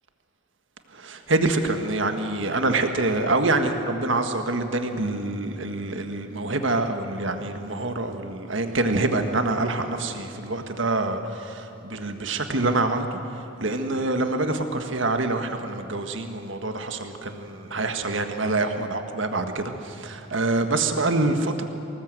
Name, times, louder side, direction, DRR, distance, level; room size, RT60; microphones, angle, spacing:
voice 1, 0.9-21.6, right 2 dB, 65° right, 6 dB, 1.6 m, -26 dB
25.5 x 19.5 x 7.8 m, 2.9 s
head